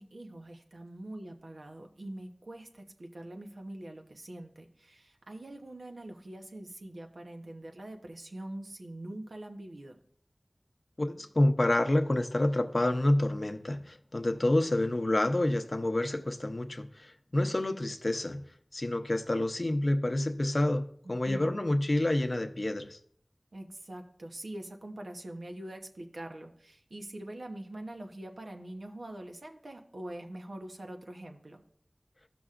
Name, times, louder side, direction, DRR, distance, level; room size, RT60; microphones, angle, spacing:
voice 1, 0.0-10.0 21.0-21.7 23.5-31.6, right 1 dB, 85° right, 1.0 m, -44 dB
voice 2, 11.0-18.4 18.7-23.0, left 1 dB, 55° left, 0.7 m, -28 dB
14.5 x 6.1 x 2.5 m
wide cardioid pair, 45°, 0 cm